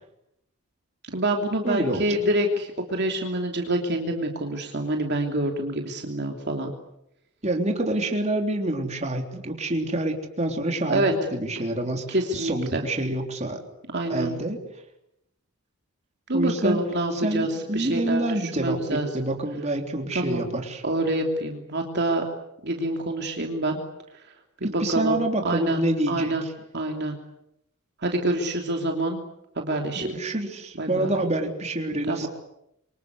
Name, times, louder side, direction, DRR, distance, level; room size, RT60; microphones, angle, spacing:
voice 1, 1.1-6.7 10.9-11.1 12.1-12.8 13.9-14.3 16.3-18.2 18.6-19.1 20.1-20.4 20.8-22.2 22.6-23.8 24.6-25.1 25.4-25.8 26.1-26.4 26.7-27.2 28.0-29.2 29.6-30.2 30.8-31.1 32.1-32.3, right 1 dB, 50° right, 3 dB, 3.0 m, -26 dB
voice 2, 1.6-2.2 7.4-12.1 12.3-13.6 14.1-14.6 16.3-16.8 17.1-20.8 24.6-26.5 30.0-32.3, right 1 dB, 30° right, 3 dB, 3.6 m, -27 dB
27.5 x 25.0 x 8.2 m, 0.83 s
head